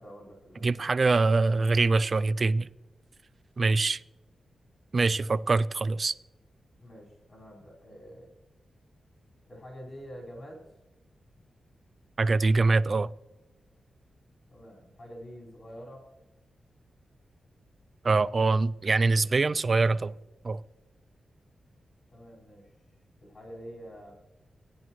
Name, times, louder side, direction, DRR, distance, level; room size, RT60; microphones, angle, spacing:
voice 1, 0.0-0.9 6.8-8.3 9.5-10.6 14.5-16.0 22.1-22.7 23.2-24.2, equal, 35° left, 4.6 m, -46 dB
voice 2, 0.6-2.7 3.6-4.0 4.9-6.1 12.2-13.1 18.0-20.1 20.4-20.6, right 3 dB, 40° right, 0.3 m, -24 dB
16.5 x 10.5 x 3.1 m
wide cardioid pair, 130°, 0 cm